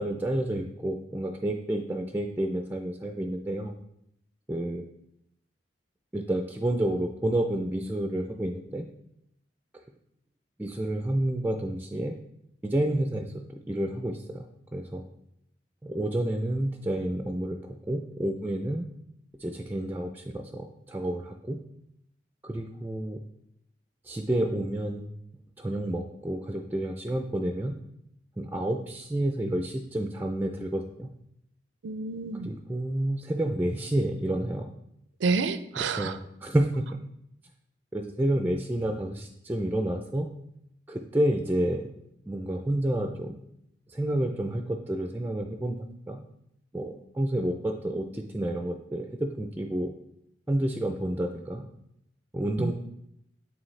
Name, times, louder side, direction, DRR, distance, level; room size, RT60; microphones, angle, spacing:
voice 1, 0.0-3.7 4.5-4.8 6.1-8.9 10.6-12.2 12.6-15.0 15.8-18.8 19.4-21.6 22.4-23.2 24.0-25.1 25.6-27.7 28.4-31.1 32.5-34.7 36.0-37.0 37.9-40.3 40.9-41.9 42.3-43.4 43.9-46.2 46.7-49.1 49.4-49.9 50.5-51.6 52.3-52.7, right 1 dB, 10° right, 4 dB, 0.3 m, -29 dB
voice 2, 31.8-32.5 35.2-36.2 52.6-52.7, right 4 dB, 80° right, 12 dB, 0.4 m, -29 dB
8.8 x 3.8 x 3.2 m, 0.78 s
head